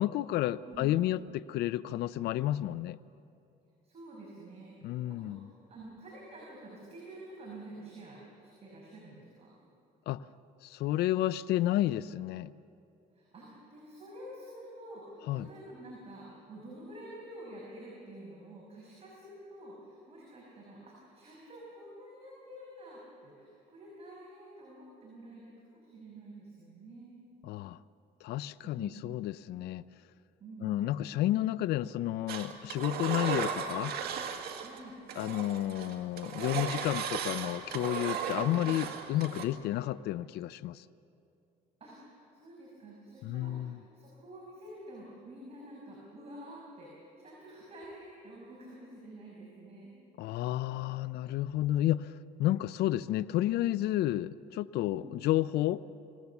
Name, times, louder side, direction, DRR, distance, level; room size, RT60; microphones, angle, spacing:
voice 1, 0.0-3.0 4.8-5.5 10.1-10.3 10.6-12.5 15.2-15.5 27.4-27.8 28.2-29.8 30.6-33.9 35.2-40.9 43.2-43.8 50.2-55.8, left 14 dB, 75° left, 16 dB, 0.5 m, -31 dB
voice 2, 3.8-9.5 13.1-27.2 28.7-29.0 30.4-30.9 34.6-35.0 38.5-38.7 41.8-49.9 54.8-55.1, right 1 dB, 35° right, -4 dB, 6.0 m, -49 dB
Engine, 32.3-34.8 35.1-39.4, right 7 dB, 70° right, 2.0 m, -36 dB
26.0 x 18.0 x 7.1 m, 2.7 s
cardioid pair, 110°, 17 cm